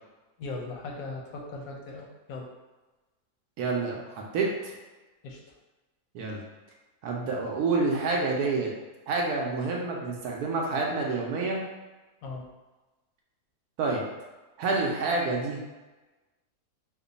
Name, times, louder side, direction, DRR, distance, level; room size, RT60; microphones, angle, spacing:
voice 1, 0.4-2.5 5.2-5.4 12.2-12.5, left 3 dB, 70° left, 0 dB, 0.9 m, -38 dB
voice 2, 3.6-4.8 6.1-6.4 7.0-8.7 9.1-11.6 13.8-14.0 14.6-15.6, right 3 dB, 70° right, -1 dB, 1.0 m, -28 dB
3.1 x 2.2 x 3.8 m, 1.2 s
omnidirectional pair, 1.8 m